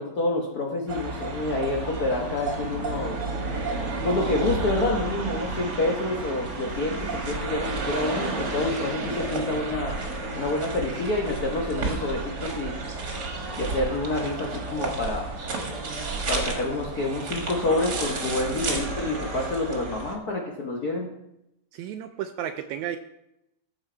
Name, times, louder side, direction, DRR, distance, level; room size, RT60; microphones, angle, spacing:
voice 1, 0.0-3.2 4.0-10.0 10.4-12.7 13.6-15.2 16.3-21.1, left 2 dB, 85° left, 0 dB, 0.8 m, -28 dB
sound 1, 0.9-20.2, right 3 dB, 40° right, 1.7 m, -31 dB
voice 2, 21.7-23.0, right 10 dB, 80° right, 7 dB, 1.8 m, -33 dB
14.0 x 6.6 x 4.5 m, 0.86 s
omnidirectional pair, 3.6 m